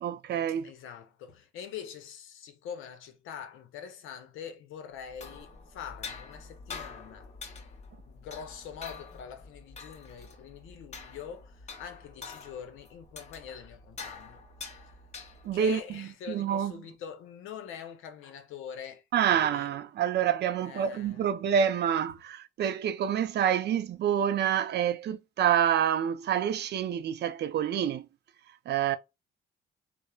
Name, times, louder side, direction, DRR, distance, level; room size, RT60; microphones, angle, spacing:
voice 1, 0.0-0.7 15.4-16.7 19.1-28.1 28.7-29.0, right 9 dB, 60° right, 0.4 m, -27 dB
voice 2, 0.6-7.3 8.1-14.4 14.7-14.9 15.5-19.7 20.6-21.3, left 8 dB, 85° left, 0.6 m, -44 dB
sound 1, 5.0-15.7, left 4 dB, 35° left, 0.7 m, -46 dB
3.0 x 2.0 x 2.3 m
cardioid pair, 90°, 20 cm